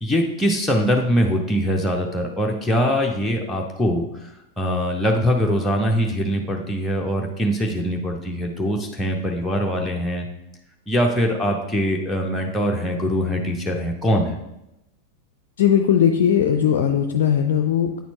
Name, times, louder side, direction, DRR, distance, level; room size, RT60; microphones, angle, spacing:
voice 1, 0.0-4.1 4.6-10.2 10.9-14.4, equal, 5° left, -1 dB, 0.6 m, -22 dB
voice 2, 15.6-18.0, left 9 dB, 55° left, 6 dB, 0.4 m, -18 dB
9.1 x 4.3 x 2.8 m, 0.88 s
figure-of-eight pair, 90°, 0 cm